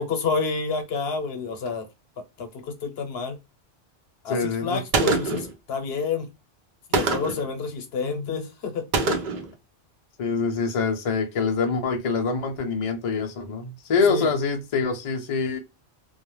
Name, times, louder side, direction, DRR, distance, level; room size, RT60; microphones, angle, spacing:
voice 1, 0.0-1.8 2.4-3.4 4.2-6.3 6.9-9.2 14.1-14.3, left 5 dB, 75° left, 0.9 m, -29 dB
voice 2, 4.3-4.8 10.2-15.6, left 4 dB, 45° left, 0.5 m, -25 dB
Gunshot gunfire, 4.9-5.5 6.9-7.5 8.9-9.5, right 3 dB, 55° right, 0.6 m, -24 dB
2.3 x 2.1 x 3.0 m
omnidirectional pair, 1.1 m